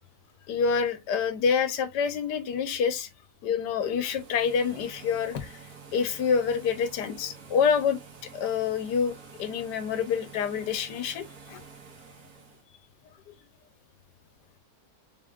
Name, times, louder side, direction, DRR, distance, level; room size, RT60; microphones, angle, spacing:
voice 1, 0.5-3.1 3.4-5.6 5.9-8.0 8.3-11.6, left 6 dB, 90° left, 1.4 m, -27 dB
sound 1, 3.8-12.6, right 5 dB, 65° right, 1.6 m, -49 dB
3.9 x 3.6 x 2.3 m
omnidirectional pair, 1.7 m